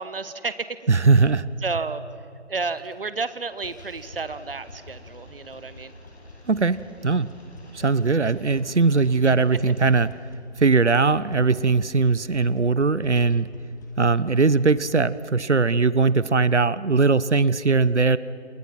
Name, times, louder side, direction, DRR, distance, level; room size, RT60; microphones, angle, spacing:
voice 1, 0.0-0.8 1.6-2.0 2.5-5.9, right 4 dB, 50° right, 13 dB, 1.2 m, -31 dB
voice 2, 0.9-1.5 6.5-7.3 7.7-10.1 10.6-13.5 14.0-18.2, right 4 dB, 75° right, 18 dB, 1.0 m, -20 dB
sound 1, 2.7-3.2 3.5-14.8, left 2 dB, 15° left, 1.4 m, -47 dB
sound 2, 4.0-10.1, left 1 dB, 65° left, 7.2 m, -51 dB
28.5 x 28.5 x 6.0 m, 2.6 s
figure-of-eight pair, 160°, 35 cm